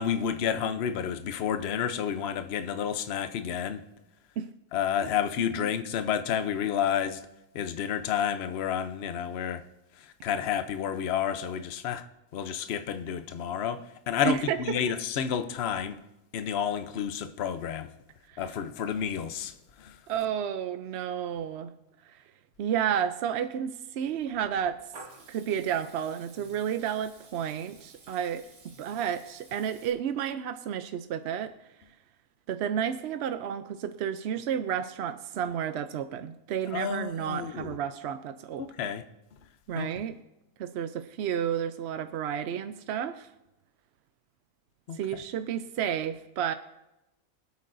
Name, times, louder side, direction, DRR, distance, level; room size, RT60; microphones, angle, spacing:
voice 1, 0.0-3.8 4.7-7.2 7.5-9.6 10.0-12.1 12.3-16.0 16.3-17.9 18.4-20.0 36.7-37.8 38.6-39.0 39.7-39.9 44.9-45.0, left 8 dB, 55° left, 0.8 m, -30 dB
voice 2, 14.2-14.8 18.3-18.4 20.1-21.7 22.0-22.2 22.6-24.8 25.3-28.5 28.8-31.5 32.5-38.6 39.7-40.2 40.6-43.3 44.9-46.5, right 9 dB, 65° right, 0.7 m, -31 dB
Water tap faucet / Liquid, 24.2-29.9, right 3 dB, 90° right, 2.0 m, -53 dB
24.0 x 8.4 x 2.6 m
omnidirectional pair, 1.5 m